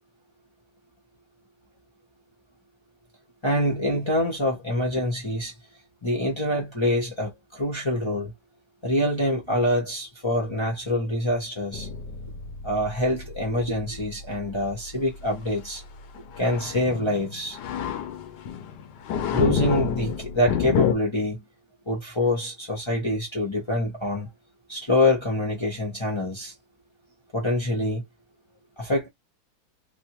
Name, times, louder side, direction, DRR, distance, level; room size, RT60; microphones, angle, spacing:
voice 1, 3.4-5.5 6.0-8.3 8.8-11.9 12.6-15.8 16.4-17.6 19.3-21.4 21.9-24.3 24.7-26.5 27.3-28.0 28.8-29.1, left 1 dB, 35° left, 0.4 m, -25 dB
sound 1, 11.7-20.9, left 8 dB, 70° left, 1.1 m, -30 dB
3.4 x 2.1 x 3.0 m
omnidirectional pair, 2.1 m